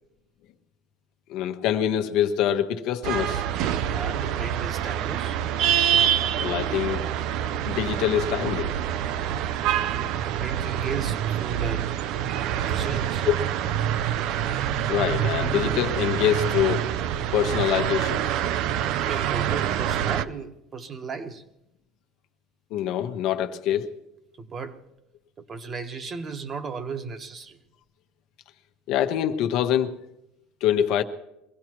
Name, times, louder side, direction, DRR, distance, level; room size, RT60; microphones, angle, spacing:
voice 1, 1.3-3.5 6.4-7.0 7.7-8.7 13.3-13.4 14.9-16.9 17.1-18.2 22.7-24.0 28.9-30.0 30.6-31.0, left 10 dB, 65° left, 1.1 m, -25 dB
sound 1, 3.0-20.3, right 10 dB, 60° right, 0.6 m, -26 dB
voice 2, 3.9-5.4 9.9-11.9 12.6-13.3 18.5-21.4 24.4-24.8 25.4-27.6, right 5 dB, 30° right, 1.3 m, -35 dB
23.0 x 16.0 x 3.1 m
supercardioid pair, 115°, 0 cm